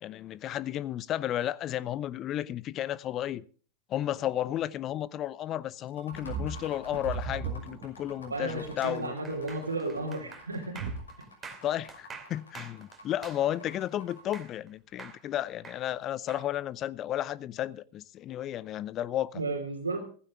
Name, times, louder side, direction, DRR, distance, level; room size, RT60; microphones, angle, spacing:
voice 1, 0.0-3.4 3.9-9.1 11.6-19.4, left 12 dB, 30° left, 0.6 m, -33 dB
sound 1, 5.9-14.5, left 1 dB, 75° left, 6.1 m, -51 dB
sound 2, 6.1-8.7 9.3-9.7 10.0-10.1 10.8-11.0, right 5 dB, 50° right, 2.0 m, -37 dB
voice 2, 8.3-10.8 11.2-11.3 19.3-20.0, right 2 dB, 80° right, 2.9 m, -33 dB
sound 3, 8.8-14.7 15.0-16.5, right 5 dB, 15° right, 2.8 m, -47 dB
15.5 x 15.5 x 3.5 m
figure-of-eight pair, 90°, 0 cm